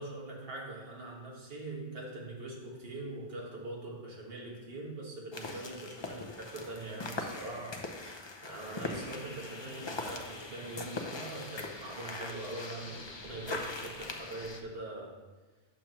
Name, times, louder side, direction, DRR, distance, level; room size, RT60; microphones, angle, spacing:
voice 1, 0.0-7.8 8.4-15.2, right 2 dB, 70° right, -1 dB, 1.7 m, -42 dB
sound 1, 5.3-14.6, left 3 dB, 35° left, 0.6 m, -41 dB
8.5 x 6.8 x 3.0 m, 1.3 s
omnidirectional pair, 1.0 m